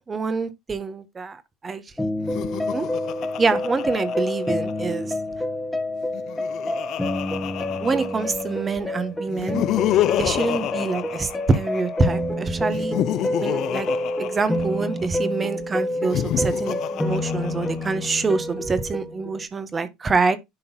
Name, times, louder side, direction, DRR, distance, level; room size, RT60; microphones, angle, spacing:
voice 1, 0.0-1.8 2.7-2.9 3.4-5.1 7.8-9.7 10.2-13.0 13.4-13.9 14.2-20.4, right 4 dB, 30° right, 1.6 m, -25 dB
sound 1, 2.0-19.5, left 1 dB, 10° left, 1.9 m, -28 dB
Laughter, 2.2-4.9 6.0-8.6 9.3-12.0 12.6-15.1 15.9-18.1, left 13 dB, 55° left, 0.4 m, -29 dB
11.0 x 3.8 x 4.5 m
hypercardioid pair, 75°, 0 cm